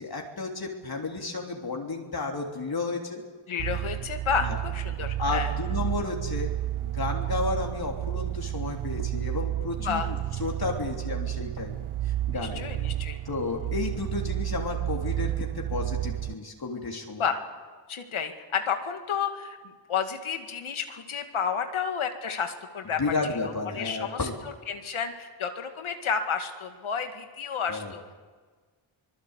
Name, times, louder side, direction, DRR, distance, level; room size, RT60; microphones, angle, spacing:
voice 1, 0.0-3.2 4.4-4.6 5.2-6.5 6.8-11.8 12.0-12.6 13.2-17.2 23.0-24.3 27.7-27.9, left 3 dB, 45° left, 1 dB, 3.4 m, -32 dB
voice 2, 3.5-5.5 9.8-10.1 12.3-13.2 17.2-17.4 17.9-23.0 23.4-28.0, left 6 dB, 75° left, 6 dB, 2.1 m, -31 dB
sound 1, 3.6-16.3, right 13 dB, 80° right, 0.9 m, -31 dB
23.5 x 21.0 x 8.2 m, 1.5 s
cardioid pair, 55°, 49 cm